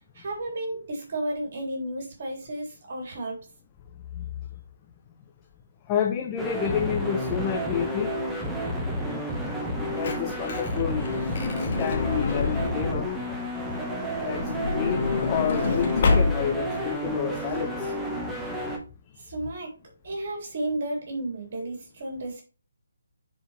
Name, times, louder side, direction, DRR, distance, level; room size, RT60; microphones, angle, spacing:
voice 1, 0.0-3.4 19.2-19.7 20.0-22.4, right 1 dB, 45° right, 0 dB, 3.8 m, -33 dB
voice 2, 5.9-8.1 9.8-11.1 11.6-13.1 14.2-17.9, left 8 dB, 20° left, 2 dB, 1.0 m, -29 dB
sound 1, 6.4-18.8, equal, 5° right, 1.5 m, -31 dB
Truck / Door, 9.6-13.1 14.2-16.7 17.4-17.5 17.7-17.9, left 4 dB, 45° left, 1.8 m, -27 dB
10.0 x 5.3 x 3.4 m, 0.34 s
figure-of-eight pair, 145°, 0 cm